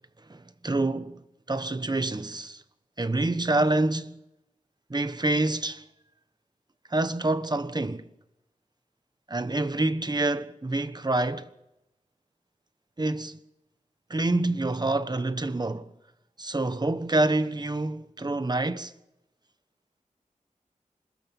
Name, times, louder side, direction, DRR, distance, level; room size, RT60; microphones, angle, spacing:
voice 1, 0.3-1.2 1.5-2.6 3.0-4.2 4.9-5.8 6.9-8.1 9.3-11.5 13.0-13.4 14.1-15.9 16.4-18.9, right 2 dB, 30° right, 1.3 m, -27 dB
26.0 x 21.5 x 5.4 m
wide cardioid pair, 80°, 14 cm